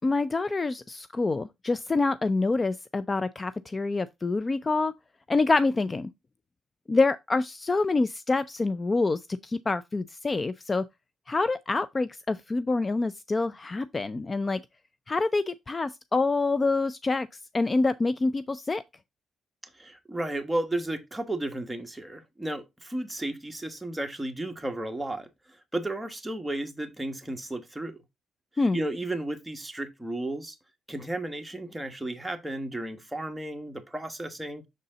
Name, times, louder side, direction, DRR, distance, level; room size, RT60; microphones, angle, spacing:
voice 1, 0.0-4.9 5.3-6.1 6.9-10.8 11.3-14.6 15.1-17.3 17.5-18.8 28.6-28.8, left 3 dB, 25° left, 0.3 m, -26 dB
voice 2, 19.8-28.0 28.7-30.6 30.9-34.6, right 1 dB, 10° right, 1.2 m, -33 dB
6.4 x 4.1 x 3.8 m
cardioid pair, 90°, 0 cm